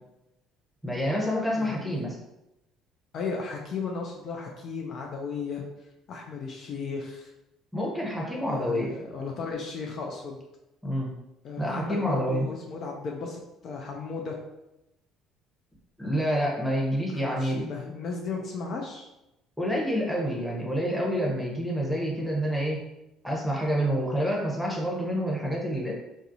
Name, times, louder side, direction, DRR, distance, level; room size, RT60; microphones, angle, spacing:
voice 1, 0.8-2.2 7.7-9.0 10.8-11.1 11.6-12.4 16.0-17.6 19.6-22.8 23.2-26.0, equal, ahead, -2 dB, 0.8 m, -28 dB
voice 2, 1.6-2.0 3.1-5.6 6.1-7.3 8.5-10.4 11.4-14.4 17.1-19.1, left 4 dB, 50° left, 1 dB, 0.3 m, -35 dB
2.3 x 2.1 x 2.6 m, 0.91 s
hypercardioid pair, 55°, 0 cm